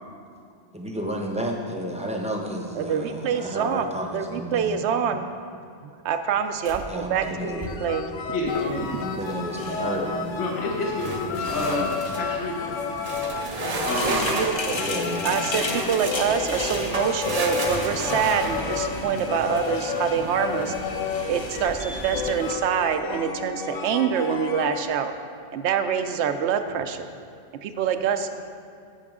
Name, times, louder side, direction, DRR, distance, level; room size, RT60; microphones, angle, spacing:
voice 1, 0.7-4.8 6.9-7.8 9.0-10.4 11.3-11.9 14.7-15.5, equal, 5° right, 0 dB, 0.8 m, -32 dB
voice 2, 2.8-3.9 4.1-5.3 5.8-8.1 8.8-9.1 14.0-14.8 15.2-20.8 21.3-25.1 25.5-27.1 27.6-28.3, right 7 dB, 70° right, 8 dB, 0.8 m, -26 dB
sound 1, 6.6-7.1 7.5-7.9 11.0-12.3 13.0-14.7 15.4-19.2, right 2 dB, 40° right, 0.7 m, -32 dB
sound 2, 7.2-24.8, left 5 dB, 90° left, 1.1 m, -32 dB
voice 3, 8.3-8.9 10.4-12.7 13.8-14.3, left 2 dB, 70° left, -2 dB, 1.3 m, -29 dB
sound 3, 8.5-22.5, left 3 dB, 40° left, 0.4 m, -35 dB
15.0 x 5.8 x 3.6 m, 2.3 s
omnidirectional pair, 1.3 m